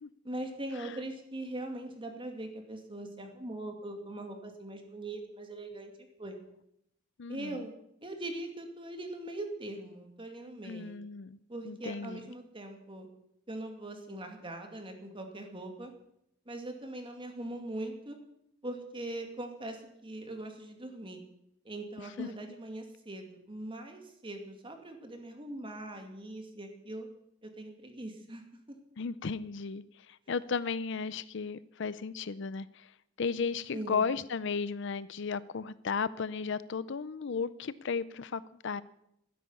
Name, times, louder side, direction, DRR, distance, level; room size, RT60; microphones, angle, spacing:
voice 1, 0.2-5.9 6.2-6.4 7.3-7.7 8.0-11.0 11.5-13.1 13.5-15.9 16.5-18.2 18.6-21.2 21.6-27.1 27.4-28.4 28.7-28.8 33.7-34.1, right 1 dB, 25° right, 4 dB, 2.4 m, -41 dB
voice 2, 7.2-7.6 10.6-11.4 11.6-12.2 22.2-22.3 29.0-32.9 33.2-38.8, left 5 dB, 65° left, 17 dB, 0.5 m, -35 dB
13.0 x 10.0 x 9.5 m, 0.77 s
head